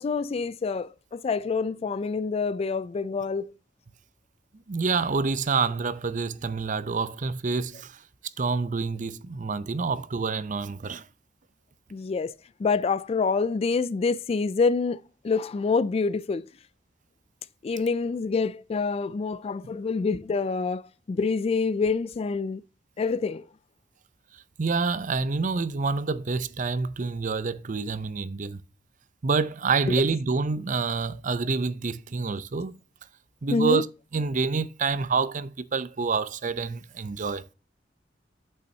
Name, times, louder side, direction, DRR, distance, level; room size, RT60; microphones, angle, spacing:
voice 1, 0.0-3.5 11.9-12.3 12.6-15.0 15.2-16.4 17.6-20.8 21.1-22.6 23.0-23.4 33.5-33.8, left 4 dB, 35° left, 0.3 m, -26 dB
voice 2, 4.7-8.0 8.4-11.0 19.6-19.7 24.3-28.6 29.2-32.8 33.4-33.9 34.1-37.4, right 4 dB, 45° right, 0.6 m, -27 dB
8.4 x 6.7 x 2.8 m
head